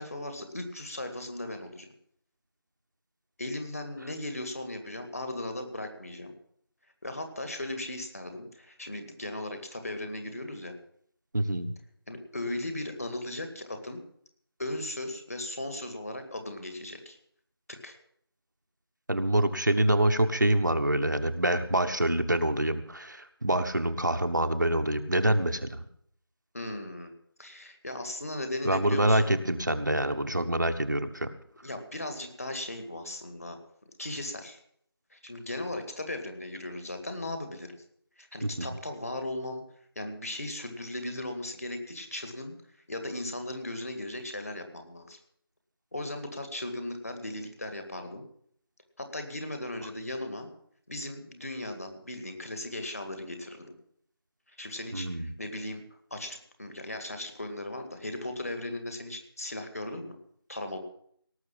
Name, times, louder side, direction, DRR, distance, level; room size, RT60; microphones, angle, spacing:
voice 1, 0.0-1.9 3.4-6.3 7.0-10.8 12.1-14.0 14.6-17.2 17.8-18.0 26.5-27.1 27.4-29.3 31.6-33.6 34.0-34.6 35.1-37.8 38.2-39.6 40.0-42.5 42.9-45.2 45.9-48.2 49.0-50.5 50.9-53.7 54.6-55.8 56.1-60.2 60.5-60.8, left 1 dB, 35° left, 6 dB, 2.0 m, -37 dB
voice 2, 11.3-11.7 19.1-25.8 28.6-31.3 38.6-38.7 54.9-55.3, right 1 dB, 50° right, 7 dB, 1.1 m, -26 dB
18.0 x 6.7 x 8.5 m, 0.65 s
figure-of-eight pair, 170°, 13 cm